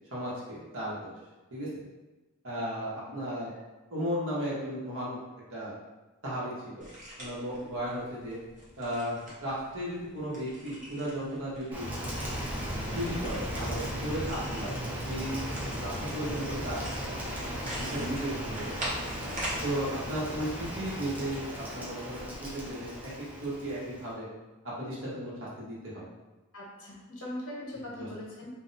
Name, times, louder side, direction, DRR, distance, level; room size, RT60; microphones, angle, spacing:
voice 1, 0.1-1.1 1.5-1.7 2.4-3.5 3.9-5.2 5.5-5.7 6.2-6.8 7.2-8.4 8.8-11.9 12.9-14.8 15.0-15.4 15.8-16.9 17.8-18.7 19.6-21.4 21.7-23.1 23.4-24.3 24.8-26.1 27.7-28.1, equal, 60° right, -7 dB, 1.1 m, -35 dB
sound 1, 6.8-19.6, right 1 dB, 35° right, 0.9 m, -43 dB
Rain, 11.7-24.1, equal, 5° right, 0.5 m, -36 dB
voice 2, 26.5-28.5, left 1 dB, 65° left, -5 dB, 0.9 m, -41 dB
2.6 x 2.1 x 3.9 m, 1.2 s
head